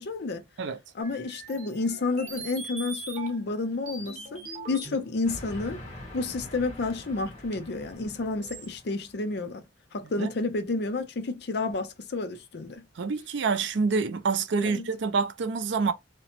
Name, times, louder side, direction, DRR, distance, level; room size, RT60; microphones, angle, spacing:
voice 1, 0.0-0.4 0.9-5.8 6.1-9.6 9.9-12.8 14.6-14.9, left 3 dB, 55° left, 0.5 m, -30 dB
sound 1, 1.0-3.6 3.9-5.4 6.5-6.6 7.5-7.6 8.4-8.7, right 3 dB, 40° right, 0.9 m, -41 dB
Train, 5.2-9.2, left 1 dB, 35° left, 1.2 m, -44 dB
voice 2, 13.0-15.9, right 4 dB, 65° right, 0.4 m, -27 dB
2.9 x 2.1 x 2.8 m
head